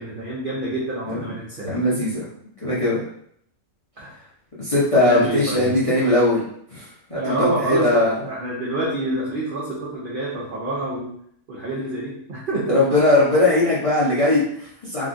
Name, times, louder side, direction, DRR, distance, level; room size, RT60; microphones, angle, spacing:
voice 1, 0.0-1.7 4.0-4.2 5.0-5.7 7.1-11.1 11.5-12.9, right 1 dB, 70° right, -4 dB, 0.5 m, -27 dB
voice 2, 1.6-2.2 2.6-3.0 4.6-6.4 6.7-8.2 12.7-15.1, left 2 dB, 35° left, -8 dB, 0.6 m, -20 dB
3.5 x 2.3 x 2.5 m, 0.66 s
omnidirectional pair, 1.6 m